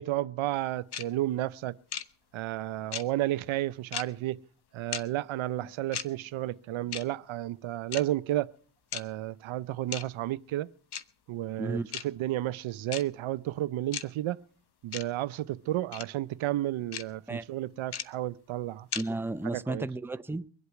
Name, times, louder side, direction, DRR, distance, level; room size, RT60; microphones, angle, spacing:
voice 1, 0.0-1.7 2.3-4.4 4.7-8.5 8.9-10.7 11.3-11.8 12.0-14.4 14.8-18.9 19.5-19.9, right 14 dB, 85° right, 0.7 m, -32 dB
sound 1, 0.9-1.0 1.9-2.0 2.9-3.0 3.9-4.0 4.9-5.0 5.9-6.0 6.9-7.0 7.9-8.0 8.9-9.0 9.9-10.0 10.9-11.0 11.9-12.0 12.9-13.0 13.9-14.0 14.9-15.0 15.9-16.0 16.9-17.0 17.9-18.0 18.9-19.0, left 8 dB, 55° left, 1.0 m, -34 dB
voice 2, 11.6-11.9 17.3-17.5 18.9-20.5, right 2 dB, 5° right, 0.6 m, -33 dB
23.5 x 8.2 x 5.9 m
cardioid pair, 95°, 46 cm